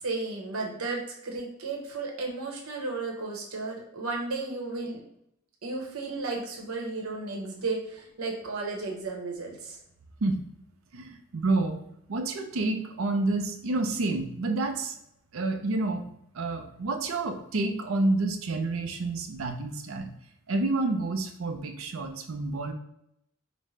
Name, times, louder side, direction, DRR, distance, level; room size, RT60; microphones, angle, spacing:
voice 1, 0.0-5.0 5.6-9.8, right 3 dB, 90° right, 0 dB, 1.0 m, -34 dB
voice 2, 10.9-11.8 12.1-15.0 15.3-16.0 16.3-20.1 20.5-22.7, right 2 dB, 70° right, 7 dB, 0.5 m, -29 dB
5.2 x 2.1 x 3.2 m, 0.77 s
head